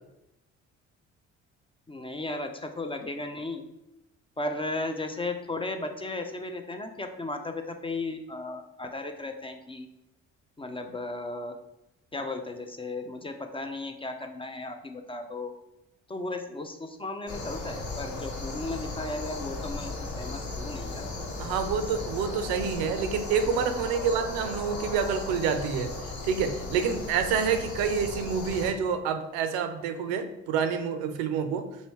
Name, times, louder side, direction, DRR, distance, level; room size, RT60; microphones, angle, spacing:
voice 1, 1.9-3.6 4.4-9.9 10.6-11.5 12.1-15.5 16.1-21.1, left 2 dB, 15° left, 5 dB, 0.3 m, -35 dB
sound 1, 17.3-28.7, left 2 dB, 50° left, 0.9 m, -36 dB
voice 2, 21.4-31.7, right 6 dB, 80° right, 9 dB, 0.5 m, -28 dB
3.1 x 2.7 x 3.0 m, 0.89 s
hypercardioid pair, 50°, 36 cm